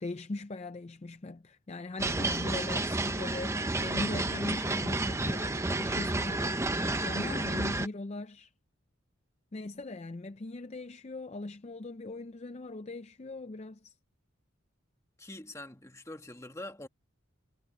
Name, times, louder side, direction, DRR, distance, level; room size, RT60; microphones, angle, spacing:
voice 1, 0.0-6.5 7.0-8.5 9.5-13.9, left 2 dB, 30° left, 0.5 m, -40 dB
sound 1, 2.0-7.9, right 2 dB, 15° right, 0.7 m, -31 dB
voice 2, 15.2-16.9, left 1 dB, 15° left, 1.6 m, -44 dB
head